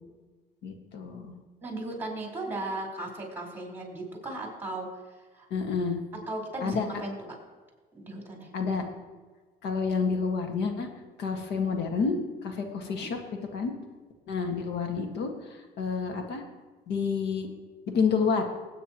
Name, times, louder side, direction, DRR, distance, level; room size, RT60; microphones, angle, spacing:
voice 1, 0.6-1.3 5.5-6.0 6.6-6.9 8.5-8.9 9.6-10.9 11.2-13.2 13.5-13.7 14.3-16.4 16.9-17.5 17.9-18.4, left 5 dB, 80° left, 4 dB, 1.8 m, -29 dB
voice 2, 1.6-5.5 6.3-7.2 7.9-8.5 12.9-13.1, right 2 dB, 10° right, -1 dB, 4.5 m, -36 dB
20.5 x 9.2 x 3.0 m, 1.3 s
cardioid pair, 110°, 17 cm